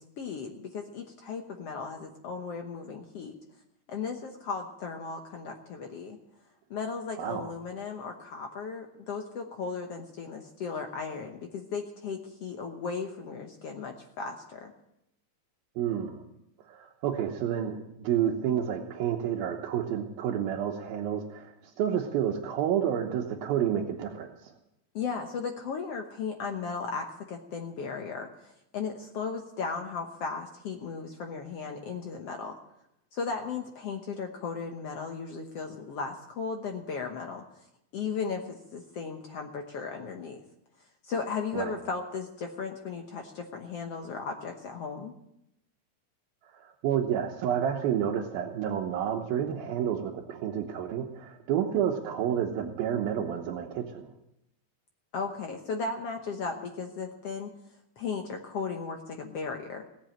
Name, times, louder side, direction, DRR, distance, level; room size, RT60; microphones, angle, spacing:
voice 1, 0.0-3.4 3.9-6.2 6.7-14.7 24.9-32.5 33.1-37.4 37.9-40.4 41.0-45.2 55.1-57.5 58.0-59.8, left 5 dB, 65° left, 3 dB, 1.5 m, -36 dB
voice 2, 7.2-7.5 15.8-16.2 16.7-24.5 41.5-41.8 46.5-54.1, right 9 dB, 80° right, 1 dB, 2.8 m, -30 dB
17.5 x 8.3 x 8.7 m, 0.83 s
omnidirectional pair, 4.2 m